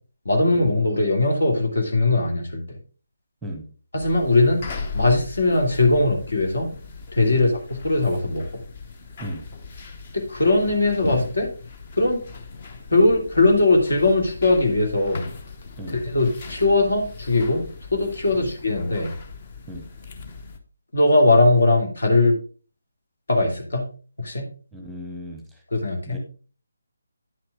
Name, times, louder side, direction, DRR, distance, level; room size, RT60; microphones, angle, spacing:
voice 1, 0.2-2.8 3.9-4.7 4.9-6.7 7.1-8.6 10.1-11.5 12.0-12.2 12.9-15.3 15.9-19.1 20.9-22.4 23.3-23.9 24.2-24.5 25.7-26.2, left 2 dB, 60° left, 2 dB, 2.3 m, -20 dB
sound 1, 4.0-20.6, left 4 dB, 35° left, 1.0 m, -38 dB
voice 2, 24.7-25.6 26.1-26.2, equal, ahead, 4 dB, 1.0 m, -36 dB
9.7 x 5.9 x 3.5 m, 0.38 s
figure-of-eight pair, 150°, 0 cm